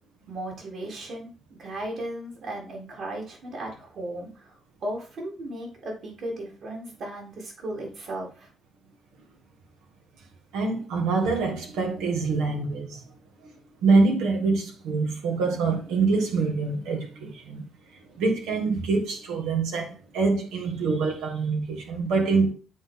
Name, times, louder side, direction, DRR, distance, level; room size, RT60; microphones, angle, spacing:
voice 1, 0.3-1.3 1.6-4.5 4.8-8.5, right 1 dB, 65° right, 3.9 m, -36 dB
voice 2, 10.5-13.0 13.4-13.5 13.8-17.6 18.1-22.5, right 4 dB, 85° right, 1.8 m, -25 dB
8.7 x 3.9 x 3.7 m
supercardioid pair, 60°, 0 cm